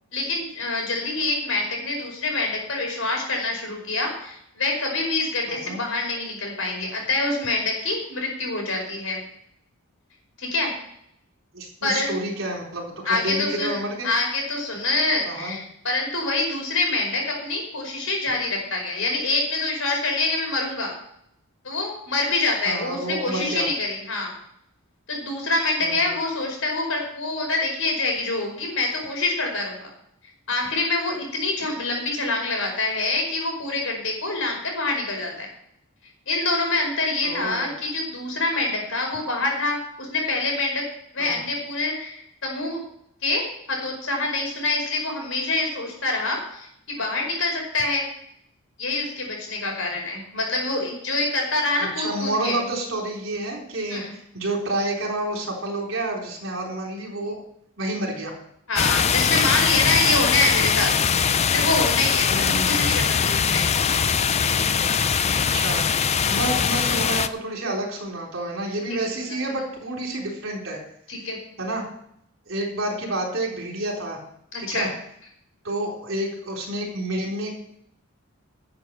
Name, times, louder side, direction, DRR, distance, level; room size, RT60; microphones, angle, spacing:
voice 1, 0.1-9.2 10.4-10.7 11.8-12.2 13.0-13.8 14.0-20.9 21.6-24.3 25.1-29.9 30.5-35.5 36.3-40.8 41.1-42.8 43.2-48.1 48.8-52.6 53.9-54.1 58.7-60.9 61.5-63.6 71.1-71.4 74.5-74.9, left 2 dB, 70° left, 1 dB, 5.0 m, -26 dB
voice 2, 5.5-5.8 11.5-14.1 15.3-15.6 22.6-23.7 25.8-26.1 37.2-37.7 41.2-41.4 51.8-57.4 57.8-58.3 62.3-62.9 65.2-65.9 66.3-70.8 71.6-71.8 72.5-74.2 74.6-74.9 75.6-77.5, right 1 dB, 65° right, 0 dB, 3.9 m, -29 dB
sound 1, 58.8-67.3, left 7 dB, 30° left, 0.4 m, -21 dB
11.5 x 7.4 x 7.6 m, 0.72 s
head